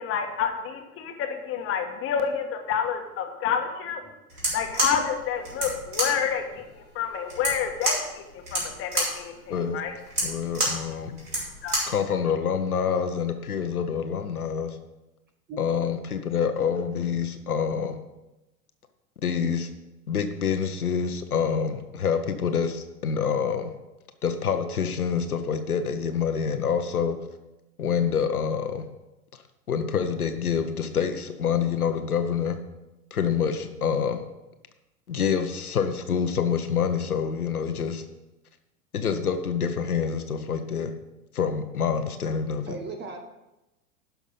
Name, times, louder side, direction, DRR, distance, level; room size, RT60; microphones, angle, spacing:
voice 1, 0.0-4.0 4.5-9.9 11.6-11.8, left 7 dB, 30° left, 5 dB, 1.5 m, -29 dB
sound 1, 4.3-12.0, right 1 dB, 75° right, 3.9 m, -29 dB
voice 2, 10.2-11.2 11.9-14.8 15.6-18.0 19.2-19.7 20.1-23.7 24.2-27.2 27.8-28.8 29.7-32.6 33.1-34.2 35.1-38.0 38.9-40.9 41.3-42.8, left 7 dB, 75° left, 8 dB, 1.0 m, -26 dB
voice 3, 15.5-16.0 42.7-43.2, right 3 dB, 25° right, 5 dB, 1.3 m, -38 dB
11.5 x 6.0 x 5.6 m, 0.98 s
figure-of-eight pair, 90°, 45 cm